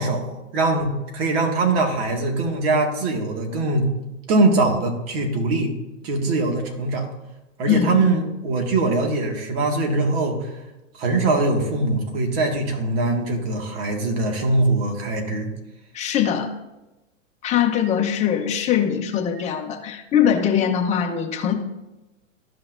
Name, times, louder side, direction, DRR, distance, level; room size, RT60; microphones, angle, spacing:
voice 1, 0.0-3.9 4.3-5.7 6.0-7.1 7.6-10.5 10.9-15.5, right 2 dB, 50° right, 3 dB, 2.0 m, -22 dB
voice 2, 7.7-8.0 15.9-16.5 17.4-21.5, left 9 dB, 15° left, 1 dB, 0.9 m, -21 dB
13.0 x 5.8 x 2.6 m, 1.0 s
hypercardioid pair, 135°, 39 cm